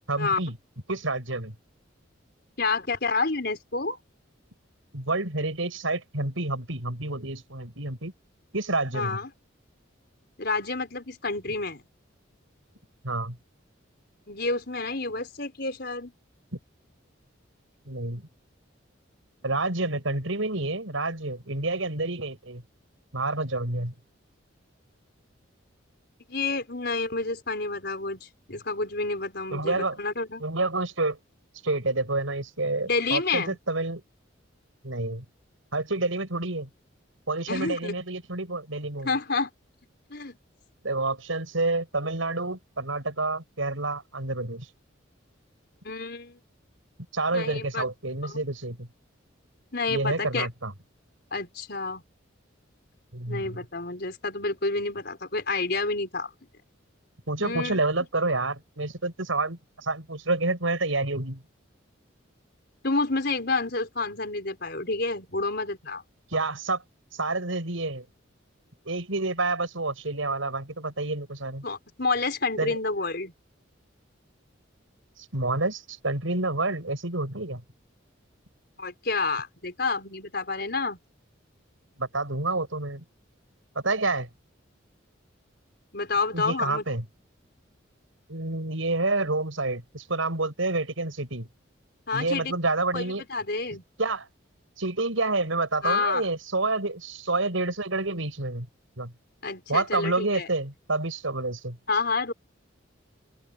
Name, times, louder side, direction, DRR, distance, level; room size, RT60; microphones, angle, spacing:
voice 1, 0.1-0.5 0.9-1.5 4.9-8.1 8.5-9.2 13.0-13.4 17.9-18.2 19.4-22.6 23.1-23.9 29.5-30.0 30.4-31.2 31.6-34.0 34.8-35.2 35.7-36.7 37.3-39.1 40.8-44.7 47.1-48.9 49.9-50.7 53.1-53.5 57.3-61.4 66.3-66.8 67.1-68.1 68.8-71.6 72.6-72.8 75.3-77.6 82.0-83.0 83.7-84.3 86.3-87.0 88.3-91.5 92.1-93.2 94.0-94.3 94.8-98.7 99.0-99.1 99.7-101.8, right 2 dB, 85° right, 6.3 m, -28 dB
voice 2, 2.6-4.0 8.9-9.3 10.4-11.8 14.3-16.1 26.3-30.4 32.8-33.6 37.5-38.0 39.0-39.5 40.1-40.4 45.8-46.4 47.3-47.8 48.2-48.4 49.7-50.5 51.3-52.0 53.3-56.3 57.4-57.8 62.8-66.0 71.6-73.3 78.8-81.0 85.9-86.8 92.1-92.5 92.9-93.8 95.8-96.2 99.4-100.5 101.9-102.3, left 3 dB, 55° left, 5.2 m, -29 dB
head